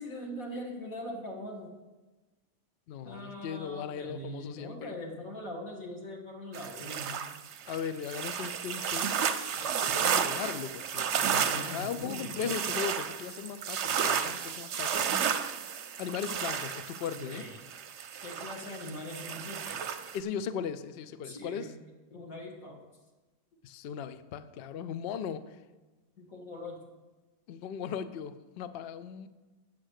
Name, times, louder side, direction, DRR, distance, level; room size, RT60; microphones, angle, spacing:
voice 1, 0.0-1.7 3.0-7.2 11.1-12.6 17.1-17.6 18.2-19.8 21.2-21.7 22.1-22.8 26.2-26.8, left 1 dB, 60° left, -1 dB, 2.4 m, -42 dB
voice 2, 2.9-4.9 7.7-11.1 11.7-15.1 16.0-17.4 20.1-21.7 23.6-25.5 27.5-29.3, left 7 dB, 80° left, 13 dB, 0.5 m, -38 dB
sound 1, 6.5-20.2, right 7 dB, 60° right, 0.8 m, -32 dB
8.5 x 7.3 x 6.4 m, 1.2 s
omnidirectional pair, 1.7 m